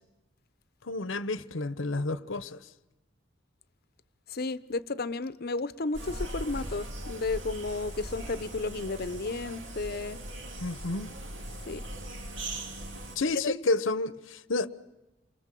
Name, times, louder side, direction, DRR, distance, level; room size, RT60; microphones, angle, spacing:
voice 1, 0.8-2.6 10.6-11.1 13.2-14.7, left 3 dB, 85° left, 1.0 m, -30 dB
voice 2, 4.3-10.2 11.7-11.8 13.4-13.5, left 3 dB, 55° left, 0.8 m, -33 dB
sound 1, 5.9-13.2, right 1 dB, 75° right, 3.2 m, -39 dB
28.5 x 24.0 x 7.6 m
head